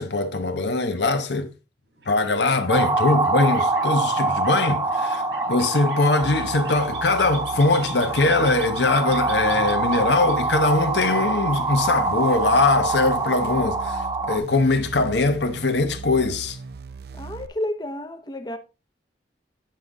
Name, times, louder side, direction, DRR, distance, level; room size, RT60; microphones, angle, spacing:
voice 1, 0.0-1.5 2.1-16.6, left 3 dB, 75° left, 1.0 m, -22 dB
sound 1, 1.9-12.3, right 3 dB, 80° right, 3.2 m, -42 dB
sound 2, 2.7-14.4, right 3 dB, 25° right, 1.2 m, -25 dB
sound 3, 6.2-17.5, right 5 dB, 60° right, 0.5 m, -38 dB
voice 2, 17.1-18.6, left 1 dB, 25° left, 0.9 m, -30 dB
9.2 x 5.3 x 3.7 m
head